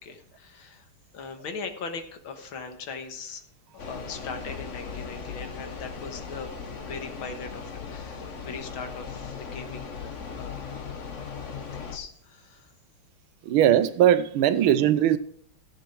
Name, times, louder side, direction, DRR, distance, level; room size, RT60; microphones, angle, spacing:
voice 1, 0.0-3.4 3.7-6.5 6.8-11.0 11.7-12.7, left 5 dB, 75° left, 2.1 m, -40 dB
sound 1, 3.8-12.0, left 5 dB, 45° left, 1.2 m, -38 dB
voice 2, 13.5-15.2, right 10 dB, 85° right, 1.6 m, -20 dB
14.5 x 7.6 x 4.6 m
omnidirectional pair, 2.3 m